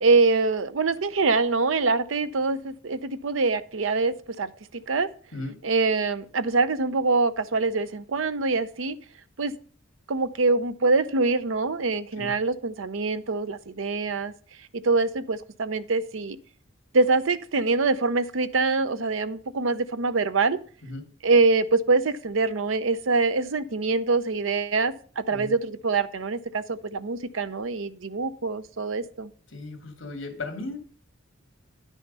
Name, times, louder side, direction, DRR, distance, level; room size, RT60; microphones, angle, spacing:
voice 1, 0.0-5.1 5.6-9.0 9.4-9.5 10.1-14.3 14.7-16.4 16.9-20.6 21.2-29.3, right 3 dB, 70° right, 0.7 m, -24 dB
voice 2, 29.5-30.8, left 2 dB, 65° left, 2.4 m, -36 dB
10.0 x 6.3 x 5.4 m
head